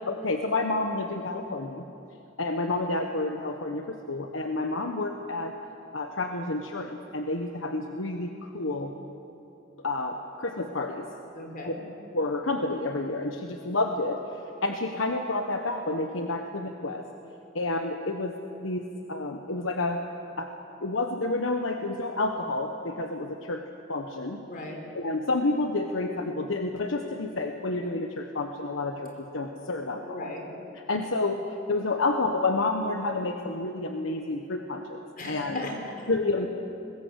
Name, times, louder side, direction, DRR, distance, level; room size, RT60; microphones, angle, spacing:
voice 1, 0.1-1.8 2.4-5.5 5.9-8.9 9.8-11.1 11.6-11.7 12.1-14.2 14.6-17.0 17.5-18.8 19.1-20.0 20.4-20.5 20.8-23.6 23.9-24.4 24.9-30.3 30.7-31.4 31.7-35.7 36.1-36.5, left 2 dB, 75° left, 4 dB, 1.3 m, -29 dB
voice 2, 11.3-11.8 24.5-24.8 30.0-30.5 35.2-36.1, left 2 dB, 45° left, 1 dB, 4.8 m, -37 dB
21.5 x 21.0 x 8.2 m, 2.8 s
head